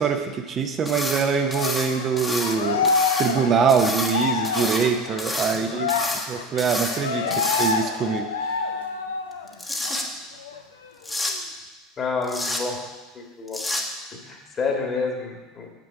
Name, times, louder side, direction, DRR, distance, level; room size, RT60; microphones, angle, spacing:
voice 1, 0.0-2.9 3.2-5.9 6.3-7.3 7.6-8.7, right 6 dB, 40° right, 5 dB, 0.8 m, -23 dB
sound 1, 0.8-1.2 1.5-2.6 2.8-3.3 3.7-4.9 5.2-5.6 5.9-6.3 6.6-7.0 7.3-8.0 9.3-10.0 11.0-11.3 12.2-12.6 13.5-13.8, left 1 dB, 10° left, 1.2 m, -29 dB
Cheering, 1.5-9.5 9.8-10.0 10.4-11.4, left 5 dB, 80° left, 0.6 m, -27 dB
voice 2, 12.0-12.8 13.1-13.7 14.1-15.7, left 4 dB, 35° left, 1 dB, 1.9 m, -29 dB
7.2 x 6.0 x 4.9 m, 1.2 s
hypercardioid pair, 75°, 0 cm